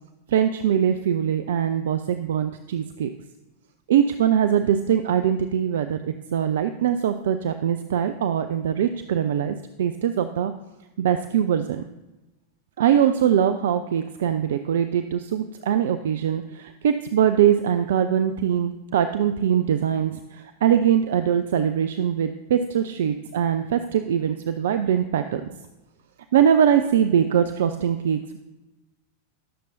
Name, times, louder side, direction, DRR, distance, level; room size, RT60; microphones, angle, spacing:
voice 1, 0.3-3.1 3.9-10.5 11.0-11.8 12.8-25.4 26.3-28.4, right 9 dB, 60° right, 10 dB, 0.4 m, -22 dB
18.5 x 6.7 x 2.6 m, 1.0 s
figure-of-eight pair, 90°, 0 cm